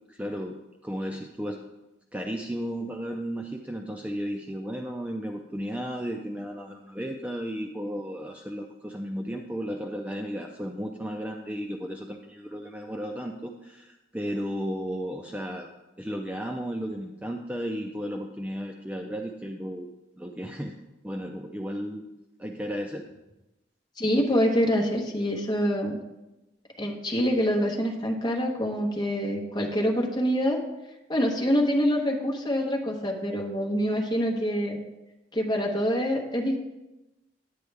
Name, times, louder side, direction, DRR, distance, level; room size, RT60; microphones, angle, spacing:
voice 1, 0.1-0.6 0.8-1.6 2.1-15.7 16.0-20.7 21.0-22.0 22.4-23.1, equal, 5° right, 2 dB, 0.4 m, -34 dB
voice 2, 24.0-26.0 26.8-30.6 31.1-34.8 35.3-36.6, equal, 20° left, 0 dB, 1.2 m, -25 dB
9.5 x 9.3 x 3.4 m, 0.99 s
head